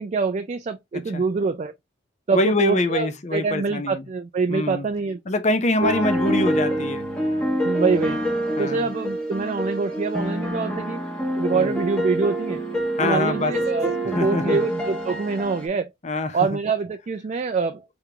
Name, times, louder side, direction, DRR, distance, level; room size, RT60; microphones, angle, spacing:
voice 1, 0.0-1.7 2.3-5.2 5.8-5.9 7.6-8.2 8.6-11.0 11.4-12.6 13.0-15.9 16.3-17.8, right 4 dB, 35° right, 0.3 m, -25 dB
voice 2, 2.3-4.0 4.5-4.9 5.3-7.1 8.6-8.9 11.5-11.8 13.0-13.5 14.1-14.6 16.0-16.5, left 2 dB, 35° left, 0.6 m, -24 dB
sound 1, 5.8-15.7, equal, 5° left, 1.0 m, -26 dB
3.7 x 3.4 x 2.8 m
head